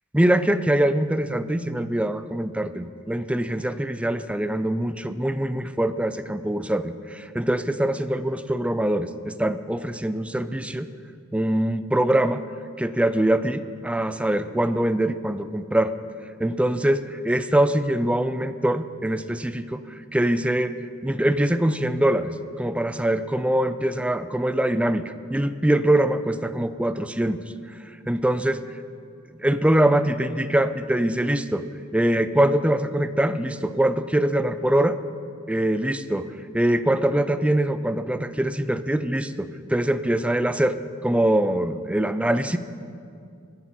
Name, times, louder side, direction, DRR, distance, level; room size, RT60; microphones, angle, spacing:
voice 1, 0.1-10.9 11.3-12.4 12.8-15.9 16.4-19.8 20.1-20.7 21.0-25.0 25.3-27.4 28.1-28.6 29.4-31.6 31.9-35.0 35.5-36.2 36.5-40.8 41.0-42.6, right 1 dB, 5° right, 12 dB, 0.4 m, -23 dB
22.0 x 11.0 x 4.4 m, 2.4 s
head